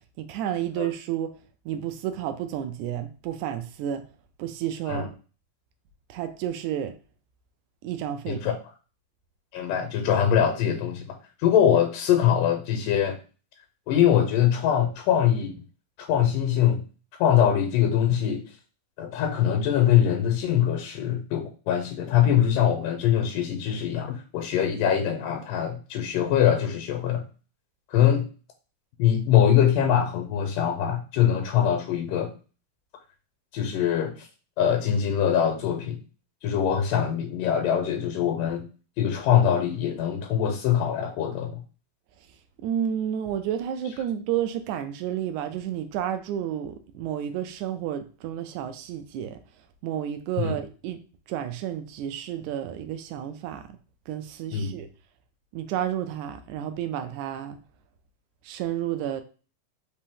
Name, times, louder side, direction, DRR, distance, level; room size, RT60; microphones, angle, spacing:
voice 1, 0.2-1.4 1.6-4.0 4.4-5.1 6.1-6.9 7.8-8.4 42.6-49.4 49.8-51.0 51.3-53.7 54.1-54.9 55.5-57.6 58.4-59.2, right 10 dB, 85° right, 1.7 m, -31 dB
voice 2, 8.3-8.6 9.5-11.1 11.4-13.2 13.9-15.5 16.0-16.8 17.2-18.4 19.0-27.2 27.9-28.3 29.0-32.3 33.5-34.3 34.6-36.0 36.4-38.6 39.0-41.6 50.4-50.5 54.5-54.8, left 9 dB, 85° left, 2.2 m, -23 dB
5.1 x 2.8 x 3.5 m
omnidirectional pair, 3.8 m